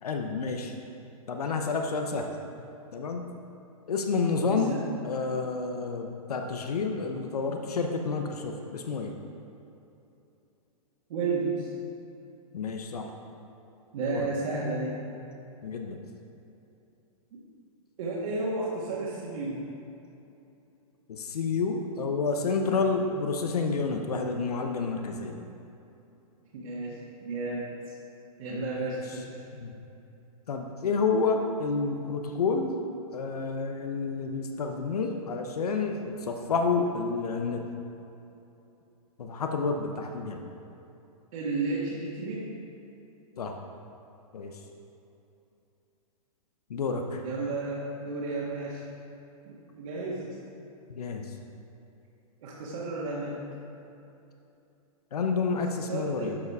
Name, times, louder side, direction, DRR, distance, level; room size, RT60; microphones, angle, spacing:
voice 1, 0.0-0.7 1.3-2.3 2.9-3.3 3.9-9.2 12.5-13.1 14.0-14.3 15.6-16.0 21.1-25.4 28.5-29.2 29.5-29.8 30.5-32.8 33.1-37.7 39.2-40.4 43.4-43.6 44.3-44.6 46.7-47.2 50.9-51.3 55.1-56.4, left 4 dB, 85° left, 4 dB, 0.9 m, -29 dB
voice 2, 4.5-4.8 11.1-11.7 13.9-14.9 17.3-17.4 18.0-19.6 22.7-22.9 26.5-27.7 28.4-29.4 41.3-42.5 47.2-48.8 49.5-50.4 52.4-53.4 55.9-56.4, right 3 dB, 65° right, -7 dB, 1.8 m, -32 dB
12.0 x 5.0 x 4.8 m, 2.9 s
hypercardioid pair, 130°, 19 cm